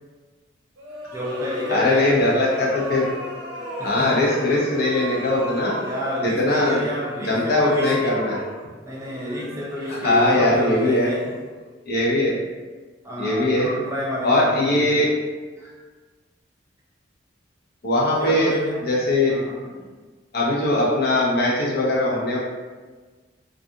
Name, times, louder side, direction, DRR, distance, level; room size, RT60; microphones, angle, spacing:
sound 1, 0.8-11.7, equal, 85° right, 0.6 m, -35 dB
voice 1, 1.1-2.2 3.8-4.2 5.8-8.2 8.8-11.2 13.0-15.1 15.6-15.8 18.0-18.8 19.3-19.9, equal, 15° right, -4 dB, 0.4 m, -30 dB
voice 2, 1.7-3.1 3.8-5.7 6.2-6.8 7.2-8.4 10.0-11.1 11.9-12.4 13.2-13.7 14.2-15.1 17.8-18.5 18.9-19.3 20.3-22.4, left 1 dB, 55° left, -5 dB, 0.7 m, -20 dB
2.4 x 2.4 x 2.6 m, 1.4 s
head